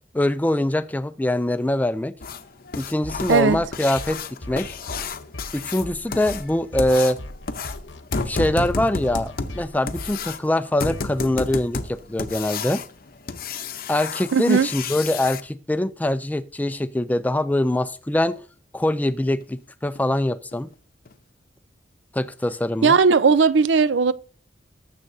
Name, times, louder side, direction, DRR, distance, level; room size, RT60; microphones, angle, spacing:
voice 1, 0.1-2.1 2.7-4.2 4.5-4.7 5.5-7.2 8.3-12.8 13.9-18.4 18.7-20.7 22.1-23.0, left 1 dB, 10° left, 0.4 m, -23 dB
sound 1, 2.2-15.4 17.7-17.8 18.3-18.4 18.8-18.9 19.4-19.5 20.0-20.1 20.5-20.6 21.1-21.2, left 4 dB, 50° left, 0.7 m, -32 dB
sound 2, 3.0-11.4, left 1 dB, 85° left, 1.1 m, -39 dB
voice 2, 3.3-3.6 14.3-14.7 22.8-24.1, right 5 dB, 75° right, 0.5 m, -17 dB
18.5 x 7.6 x 2.7 m
head